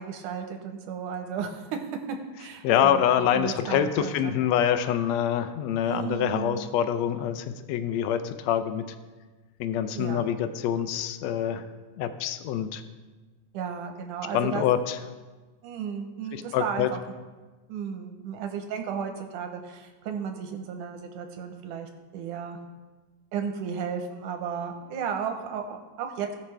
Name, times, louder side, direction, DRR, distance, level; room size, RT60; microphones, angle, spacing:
voice 1, 0.0-1.8 2.4-4.4 5.8-6.6 9.9-10.3 13.5-14.6 15.6-17.0 17.7-22.6 23.3-26.3, right 7 dB, 85° right, 5 dB, 2.5 m, -34 dB
voice 2, 2.6-8.8 9.6-11.6 12.0-12.8 14.3-15.0 16.3-16.9, left 9 dB, 80° left, 10 dB, 1.6 m, -25 dB
17.5 x 6.0 x 3.3 m, 1.3 s
omnidirectional pair, 3.5 m